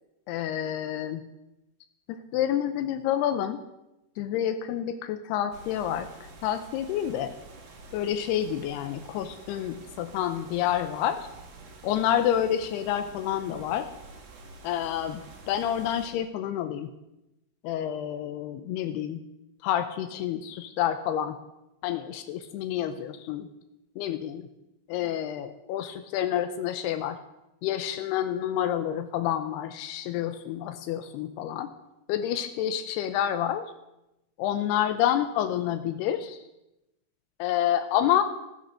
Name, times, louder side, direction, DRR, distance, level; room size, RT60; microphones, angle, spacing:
voice 1, 0.3-1.2 2.1-3.6 4.2-6.1 6.4-7.3 7.9-11.3 11.8-13.9 14.6-16.9 17.6-19.2 19.6-21.4 21.8-23.5 24.0-24.5 24.9-27.2 27.6-31.7 32.1-33.7 34.4-36.4 37.4-38.2, left 10 dB, 85° left, 9 dB, 2.8 m, -28 dB
sound 1, 5.5-16.1, right 3 dB, 65° right, 4.0 m, -48 dB
14.5 x 10.0 x 6.5 m, 0.91 s
omnidirectional pair, 4.6 m